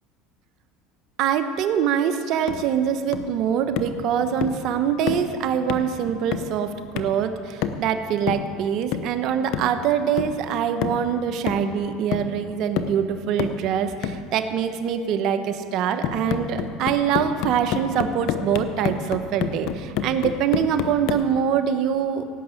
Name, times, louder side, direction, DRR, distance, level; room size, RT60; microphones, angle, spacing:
voice 1, 1.2-22.3, right 8 dB, 60° right, 8 dB, 1.0 m, -24 dB
sound 1, 2.5-2.7 3.1-3.4 3.8-4.0 4.4-4.7 5.1-5.3 5.7-5.9 6.3-6.6 7.0-7.2 7.6-7.9 8.3-8.5 8.9-9.2 9.5-9.8 10.2-10.4 10.8-11.1 11.5-11.8 12.1-12.4 12.8-13.0 13.4-13.7 14.0-14.3 16.0-21.3, left 8 dB, 65° left, 0.8 m, -29 dB
17.0 x 6.2 x 8.4 m, 2.4 s
supercardioid pair, 100°, 0 cm